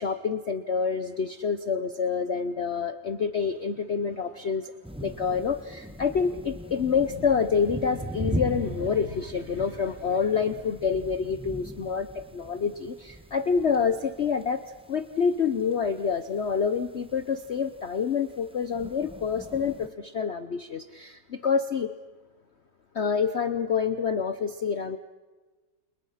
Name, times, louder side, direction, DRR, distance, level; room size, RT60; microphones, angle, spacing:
voice 1, 0.0-4.7 5.0-21.9 22.9-25.0, left 6 dB, 45° left, 10 dB, 0.9 m, -27 dB
sound 1, 4.8-19.9, right 1 dB, 5° right, 1.1 m, -40 dB
30.0 x 29.0 x 5.7 m, 1.3 s
omnidirectional pair, 2.0 m